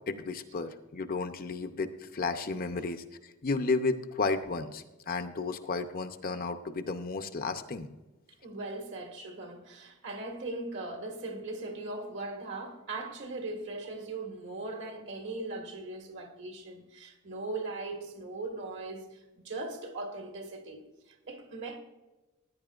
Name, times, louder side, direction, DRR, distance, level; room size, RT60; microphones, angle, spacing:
voice 1, 0.1-3.0 3.4-7.9, left 3 dB, 40° left, 0.7 m, -33 dB
voice 2, 8.4-21.8, right 2 dB, 60° right, 1.7 m, -39 dB
15.5 x 9.5 x 2.4 m
head